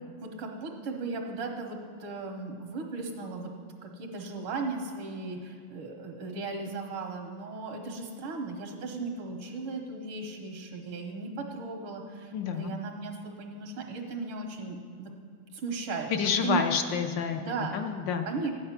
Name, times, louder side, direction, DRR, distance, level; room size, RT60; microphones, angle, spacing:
voice 1, 0.2-3.5 3.8-15.1 15.5-16.1 16.4-16.7 17.4-17.8 18.3-18.5, right 4 dB, 85° right, 2 dB, 1.9 m, -36 dB
voice 2, 12.3-12.7 16.1-17.4 17.7-18.3, left 7 dB, 70° left, 6 dB, 1.1 m, -28 dB
12.5 x 9.2 x 5.8 m, 2.2 s
omnidirectional pair, 2.4 m